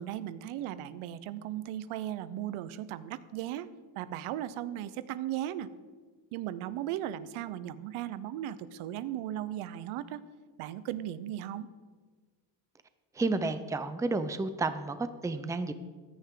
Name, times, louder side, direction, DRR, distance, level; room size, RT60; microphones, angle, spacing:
voice 1, 0.0-3.7 4.0-5.7 6.3-10.2 10.6-11.7, right 12 dB, 80° right, 15 dB, 0.7 m, -37 dB
voice 2, 13.2-15.7, right 3 dB, 5° right, 11 dB, 0.5 m, -31 dB
15.0 x 10.5 x 3.7 m, 1.5 s
cardioid pair, 120°, 49 cm